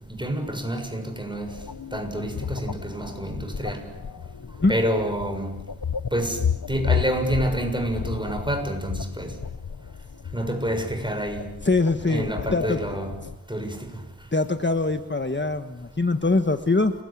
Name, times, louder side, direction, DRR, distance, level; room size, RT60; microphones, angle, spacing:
voice 1, 0.2-1.6 1.9-3.8 4.7-5.6 6.1-6.4 6.7-9.4 10.3-11.5 12.0-13.2 13.5-13.9, right 1 dB, 15° right, 5 dB, 6.8 m, -28 dB
sound 1, 1.5-13.4, left 7 dB, 75° left, 1.0 m, -33 dB
voice 2, 11.6-12.8 14.3-16.9, left 3 dB, 30° left, 8 dB, 1.4 m, -23 dB
29.5 x 22.0 x 8.7 m, 0.94 s
wide cardioid pair, 55°, 34 cm